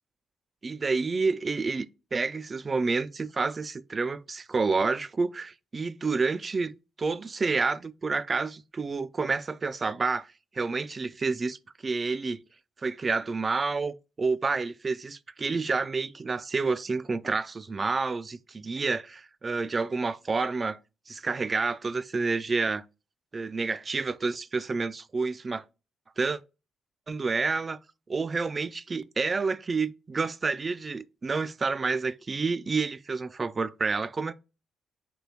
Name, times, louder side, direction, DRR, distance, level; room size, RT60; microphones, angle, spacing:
voice 1, 0.6-12.4 12.8-20.8 21.1-22.8 23.3-25.6 26.2-26.4 27.1-27.8 28.1-34.3, right 4 dB, 35° right, 0.3 m, -29 dB
4.4 x 3.0 x 2.7 m
hypercardioid pair, 40°, 0 cm